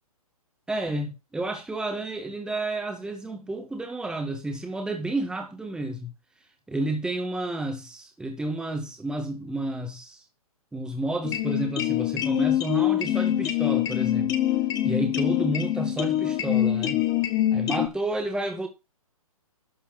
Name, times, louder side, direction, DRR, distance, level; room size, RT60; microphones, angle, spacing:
voice 1, 0.7-6.1 6.7-10.2 10.7-14.3 14.8-17.0 17.5-18.7, right 2 dB, 5° right, 2.0 m, -31 dB
sound 1, 11.2-17.9, left 12 dB, 20° left, 1.4 m, -24 dB
12.5 x 4.2 x 6.0 m
hypercardioid pair, 135°, 19 cm